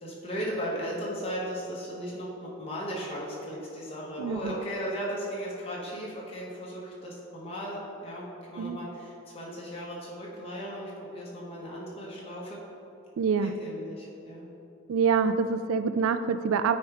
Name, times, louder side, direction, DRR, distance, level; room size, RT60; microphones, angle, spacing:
voice 1, 0.0-12.6 13.4-14.4, equal, 30° left, -5 dB, 1.3 m, -36 dB
voice 2, 4.2-4.5 8.6-8.8 13.2-13.5 14.9-16.8, right 6 dB, 80° right, 11 dB, 0.3 m, -26 dB
9.1 x 4.7 x 3.5 m, 2.7 s
head